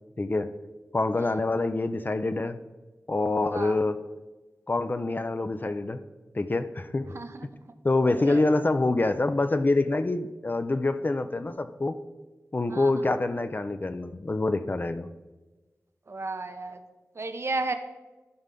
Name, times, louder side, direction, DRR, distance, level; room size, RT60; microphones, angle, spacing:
voice 1, 0.2-0.5 0.9-2.6 3.1-4.0 4.7-6.0 6.3-7.2 7.8-12.0 12.5-15.1, left 2 dB, 35° left, 11 dB, 0.4 m, -26 dB
voice 2, 7.1-7.5 8.3-8.5 12.7-13.0 16.1-16.8 17.2-17.7, right 3 dB, 50° right, 8 dB, 0.7 m, -33 dB
12.5 x 5.5 x 3.8 m, 1.2 s
wide cardioid pair, 95°, 6 cm